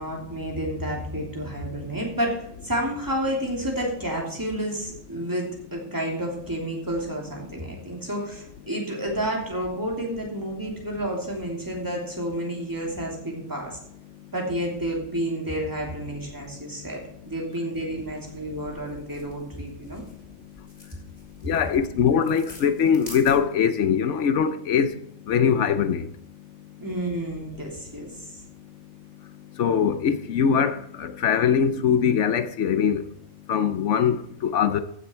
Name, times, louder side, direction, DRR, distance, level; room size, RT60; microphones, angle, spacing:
voice 1, 0.0-13.8 14.3-20.0 26.8-28.1, right 1 dB, 15° right, 2.9 m, -30 dB
sound 1, 17.6-23.8, equal, 35° left, 4.3 m, -47 dB
voice 2, 21.4-25.0 25.3-26.1 29.6-33.0 33.5-34.8, left 7 dB, 70° left, 1.0 m, -22 dB
15.0 x 6.8 x 4.4 m
omnidirectional pair, 1.3 m